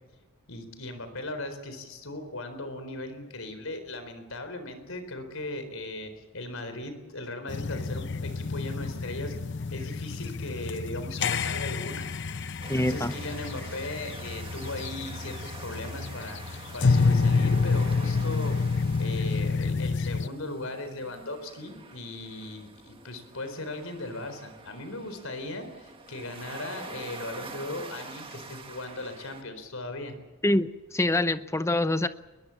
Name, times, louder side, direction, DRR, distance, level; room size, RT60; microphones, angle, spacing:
voice 1, 0.5-9.3 9.7-30.1, left 2 dB, 75° left, 9 dB, 4.2 m, -38 dB
sound 1, 7.5-20.3, left 4 dB, 55° left, 0.7 m, -28 dB
sound 2, 12.6-29.4, right 4 dB, 25° right, 1.9 m, -46 dB
voice 2, 12.7-13.1 30.4-32.1, left 1 dB, 15° left, 12 dB, 0.7 m, -25 dB
22.0 x 21.5 x 7.2 m, 1.2 s
head